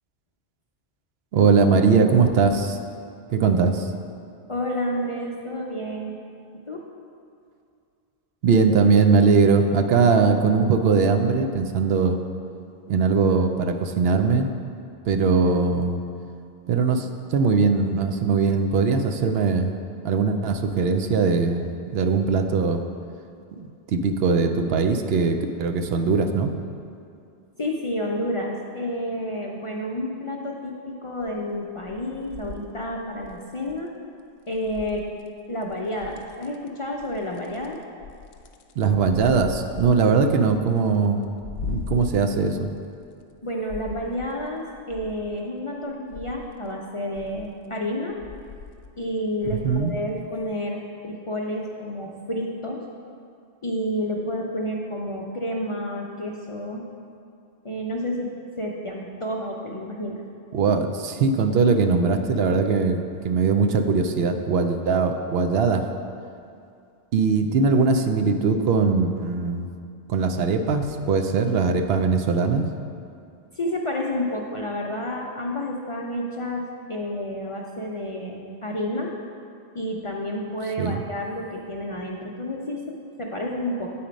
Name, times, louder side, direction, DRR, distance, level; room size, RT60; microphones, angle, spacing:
voice 1, 1.3-2.8 3.3-3.9 8.4-12.2 12.9-14.5 15.0-16.0 16.7-19.7 20.0-22.8 23.5-26.5 38.8-41.2 41.6-42.7 49.5-49.9 60.5-65.9 67.1-69.7 70.1-72.6 80.8-81.0, right 5 dB, 75° right, 6 dB, 0.8 m, -21 dB
voice 2, 4.5-6.2 6.7-6.8 27.6-33.9 34.5-35.1 35.5-37.8 43.4-48.2 49.0-52.8 53.6-56.8 57.6-60.2 73.5-79.1 79.7-83.9, left 1 dB, 40° left, -1 dB, 0.5 m, -30 dB
sound 1, 31.2-31.6 31.8-33.8 34.5-35.3 35.6-36.7 37.0-43.3 43.7-45.4 45.8-46.6 47.2-47.7 48.1-49.1 49.4-50.0 50.4-50.5, left 5 dB, 75° left, 0.8 m, -39 dB
8.5 x 4.3 x 5.1 m, 2.4 s
omnidirectional pair, 1.1 m